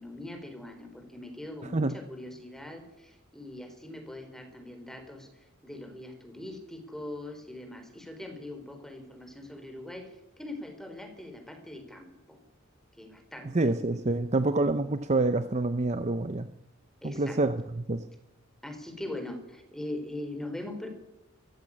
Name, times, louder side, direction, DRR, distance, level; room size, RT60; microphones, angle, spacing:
voice 1, 0.0-5.3 5.6-12.4 13.0-13.6 17.0-17.4 18.6-20.9, left 1 dB, ahead, 7 dB, 3.9 m, -41 dB
voice 2, 13.5-16.5 17.0-18.0, right 2 dB, 35° right, 10 dB, 0.7 m, -27 dB
22.5 x 15.0 x 8.7 m, 0.95 s
head